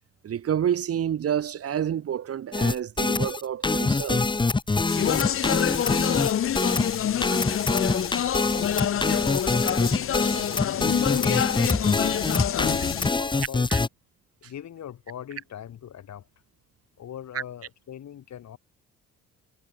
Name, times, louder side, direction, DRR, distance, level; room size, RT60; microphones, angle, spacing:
voice 1, 0.2-4.3 13.7-13.8 17.3-17.4, right 9 dB, 50° right, 1.1 m, -29 dB
sound 1, 2.5-13.9, left 3 dB, 15° left, 0.8 m, -25 dB
Speech, 4.9-13.1, left 10 dB, 45° left, 0.7 m, -27 dB
voice 2, 6.8-7.5 8.6-13.7 14.4-16.3 17.0-18.6, left 10 dB, 65° left, 6.2 m, -42 dB
cardioid pair, 90°, 30 cm